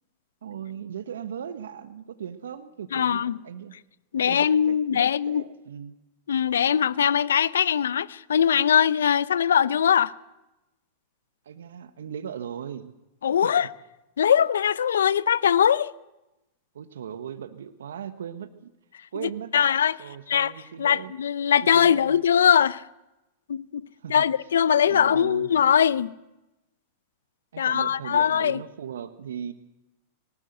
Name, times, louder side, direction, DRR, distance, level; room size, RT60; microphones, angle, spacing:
voice 1, 0.4-3.7 4.1-5.9 11.4-12.9 13.4-13.6 16.7-18.7 19.1-19.7 20.0-21.1 21.6-22.2 24.0-24.3 24.9-25.5 27.5-29.5, right 8 dB, 80° right, 1.2 m, -38 dB
voice 2, 2.9-3.4 4.1-5.4 6.3-10.1 13.2-13.7 14.2-15.9 19.2-20.0 20.3-20.5 20.8-22.8 23.5-23.8 24.1-26.1 27.6-28.6, left 8 dB, 80° left, 0.7 m, -21 dB
21.0 x 19.0 x 7.9 m
hypercardioid pair, 100°, 0 cm